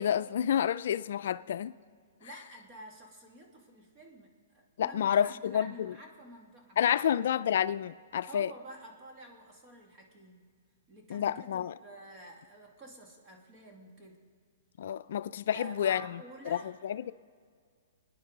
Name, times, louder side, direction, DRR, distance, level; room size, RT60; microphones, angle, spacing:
voice 1, 0.0-1.7 4.8-5.7 6.8-8.5 11.1-11.7 14.8-16.6 16.8-17.1, left 9 dB, 65° left, 0.4 m, -29 dB
voice 2, 2.2-7.2 8.3-10.4 10.9-14.2 15.5-16.7, right 1 dB, 25° right, 2.3 m, -50 dB
29.5 x 10.0 x 3.9 m
hypercardioid pair, 155°, 0 cm